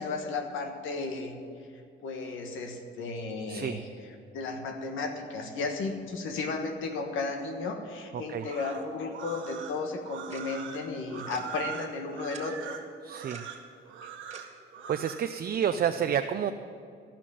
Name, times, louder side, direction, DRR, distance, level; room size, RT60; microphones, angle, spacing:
voice 1, 0.0-1.3 2.0-3.9 4.3-12.8, left 3 dB, 80° left, 5 dB, 1.4 m, -34 dB
voice 2, 8.1-8.5 13.0-13.4 14.9-16.5, right 9 dB, 50° right, 7 dB, 0.5 m, -29 dB
sound 1, 8.3-15.3, right 8 dB, 80° right, 1.4 m, -42 dB
Tick-tock, 10.3-10.4 11.3-11.4 12.3-12.4 13.3-13.5 14.3-14.4, right 4 dB, 35° right, 1.8 m, -46 dB
14.5 x 5.9 x 9.8 m, 2.3 s
cardioid pair, 90°, 20 cm